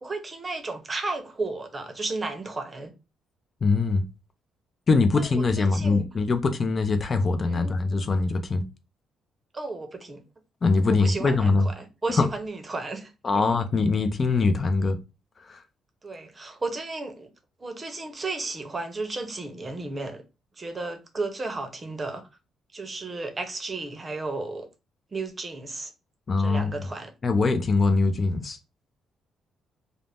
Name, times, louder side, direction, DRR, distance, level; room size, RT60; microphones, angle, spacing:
voice 1, 0.0-2.9 5.2-6.1 7.5-8.0 9.5-10.2 11.0-13.5 16.0-17.3 17.6-20.2 20.6-22.3 22.7-24.7 25.1-25.9 26.4-27.1, right 3 dB, 30° right, 0.6 m, -34 dB
voice 2, 3.6-4.0 4.9-8.6 10.6-11.7 12.2-12.3 13.2-15.0 15.4-15.6 26.3-26.9 27.2-28.6, left 3 dB, 40° left, 0.4 m, -23 dB
2.5 x 2.0 x 3.3 m
cardioid pair, 90°, 0 cm